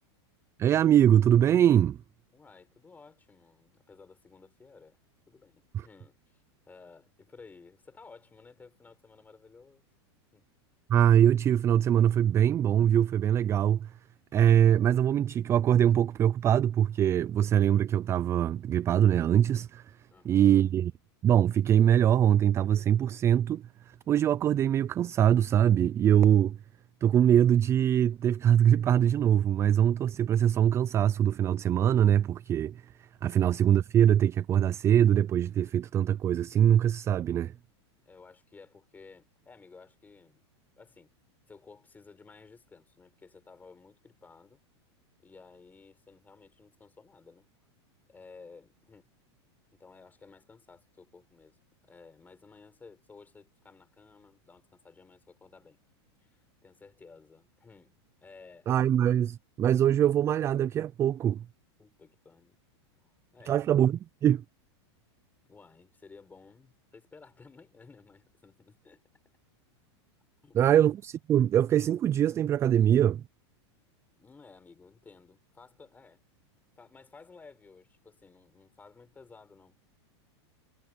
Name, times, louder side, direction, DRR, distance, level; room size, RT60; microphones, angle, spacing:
voice 1, 0.6-2.0 5.7-5.8 10.9-13.9 14.3-19.8 20.3-20.9 21.2-23.6 24.1-26.6 27.0-32.8 33.2-37.5 58.7-61.4 63.5-64.4 70.5-73.2, right 10 dB, 20° right, 0.3 m, -23 dB
voice 2, 2.3-5.0 5.3-9.9 10.3-10.4 20.1-20.7 33.2-33.4 38.1-40.4 40.8-41.1 41.5-44.6 45.2-47.5 48.1-49.1 49.7-51.6 51.8-55.8 56.2-58.9 61.8-62.6 63.0-63.1 63.3-63.8 65.4-69.0 70.4-70.8 74.1-76.2 76.8-79.8, left 4 dB, 10° left, 7.1 m, -55 dB
supercardioid pair, 145°, 15 cm